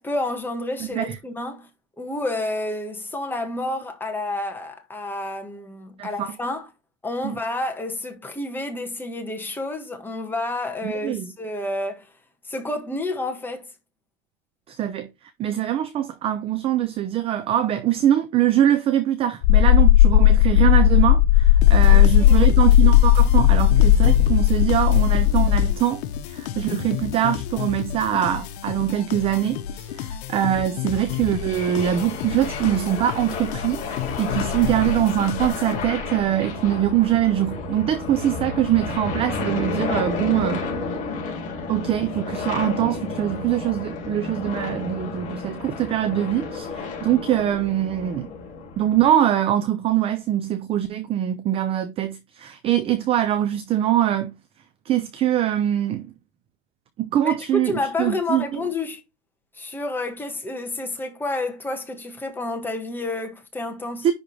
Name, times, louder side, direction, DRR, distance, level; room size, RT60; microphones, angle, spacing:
voice 1, 0.0-1.7 2.0-6.7 7.0-12.1 12.4-13.7 21.9-22.6 57.2-59.0 59.5-64.1, left 2 dB, 5° left, 1.3 m, -29 dB
voice 2, 6.0-6.4 7.2-7.4 10.8-11.3 14.7-15.1 15.4-33.8 34.2-40.7 41.7-48.3 48.8-54.3 54.9-56.1 57.0-57.7 58.0-58.6 64.0-64.1, right 11 dB, 20° right, 0.4 m, -23 dB
sound 1, 19.4-25.7, left 12 dB, 55° left, 0.4 m, -15 dB
sound 2, 21.6-36.2, left 10 dB, 75° left, 1.2 m, -32 dB
sound 3, 30.9-49.1, left 4 dB, 25° left, 3.5 m, -31 dB
10.5 x 3.6 x 3.2 m
supercardioid pair, 155°, 33 cm